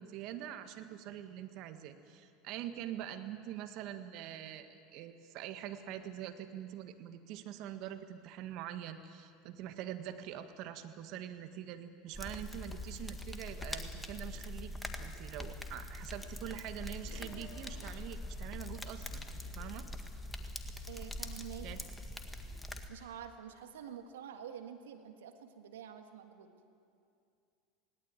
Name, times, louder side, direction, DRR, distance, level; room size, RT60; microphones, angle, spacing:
voice 1, 0.0-19.9 21.6-21.8, right 11 dB, 55° right, 8 dB, 1.7 m, -44 dB
sound 1, 12.1-22.9, left 1 dB, 10° left, 1.9 m, -43 dB
Race car auto racing / Accelerating revving vroom, 16.1-20.1, left 6 dB, 60° left, 3.5 m, -59 dB
voice 2, 20.9-21.7 22.9-26.5, right 9 dB, 80° right, 7 dB, 1.7 m, -47 dB
19.0 x 18.5 x 9.1 m, 2.5 s
hypercardioid pair, 90°, 0 cm